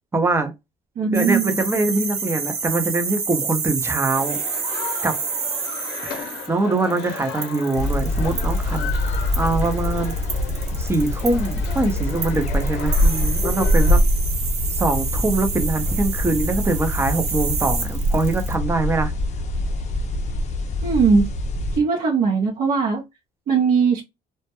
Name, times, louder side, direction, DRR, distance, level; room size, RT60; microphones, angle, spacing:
voice 1, 0.1-0.5 1.1-4.4 5.0-5.2 6.0-8.9 9.4-10.1 10.8-14.0 14.8-19.1, right 2 dB, 15° right, 0.6 m, -23 dB
voice 2, 1.0-1.5 20.8-21.2 21.7-23.0 23.5-24.0, right 5 dB, 55° right, 0.6 m, -19 dB
sound 1, 1.1-18.5, right 5 dB, 70° right, 1.0 m, -29 dB
sound 2, 4.1-14.0, left 6 dB, 90° left, 0.6 m, -35 dB
sound 3, 7.7-21.8, left 1 dB, 45° left, 0.5 m, -23 dB
2.2 x 2.1 x 2.8 m
cardioid pair, 110°, 17 cm